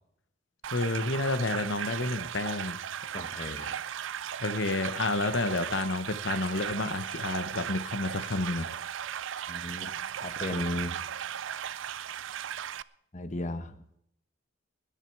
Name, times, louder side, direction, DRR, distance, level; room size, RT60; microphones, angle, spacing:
sound 1, 0.6-12.8, right 9 dB, 65° right, 0.4 m, -37 dB
voice 1, 0.7-2.8 4.4-8.7, left 2 dB, 60° left, 10 dB, 1.0 m, -30 dB
voice 2, 3.1-3.7 9.5-9.9 10.2-11.0 13.1-13.7, left 1 dB, 35° left, 9 dB, 1.0 m, -35 dB
21.0 x 9.3 x 4.7 m, 0.72 s
head